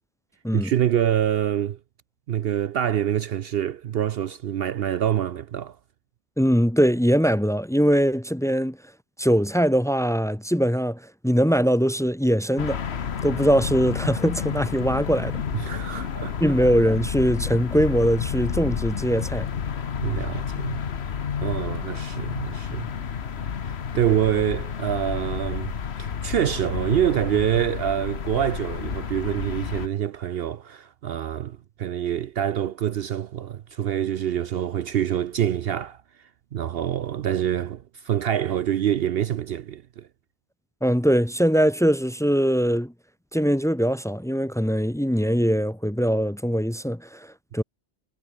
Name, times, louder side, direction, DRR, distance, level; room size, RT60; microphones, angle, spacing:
voice 1, 0.5-1.8 2.3-5.8 15.5-16.5 20.0-20.8 21.4-22.9 23.9-36.0 36.5-40.1, right 10 dB, 65° right, 0.8 m, -26 dB
voice 2, 6.4-8.8 9.2-12.8 13.2-15.4 15.7-15.8 16.4-19.5 40.8-42.9 43.3-47.6, equal, 5° left, 0.4 m, -22 dB
sound 1, 12.6-29.9, left 7 dB, 65° left, 1.4 m, -30 dB
omnidirectional pair, 1.2 m